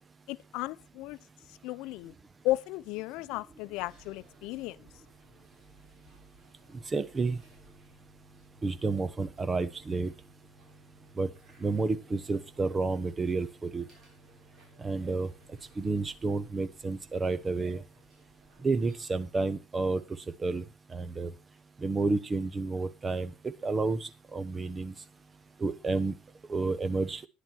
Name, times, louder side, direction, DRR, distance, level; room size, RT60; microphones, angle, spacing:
voice 1, 0.3-1.2 1.5-2.1 2.4-4.8, left 17 dB, 75° left, 0.6 m, -34 dB
sound 1, 3.7-19.1, right 1 dB, 40° right, 6.2 m, -60 dB
voice 2, 6.9-7.4 8.6-10.1 11.2-11.3 11.6-13.8 14.8-15.3 15.8-17.8 18.6-20.0 20.4-20.6 20.9-21.3 21.8-24.9 25.6-26.1 26.5-27.2, right 3 dB, 20° right, 1.1 m, -30 dB
11.0 x 10.0 x 4.5 m
cardioid pair, 125°, 0 cm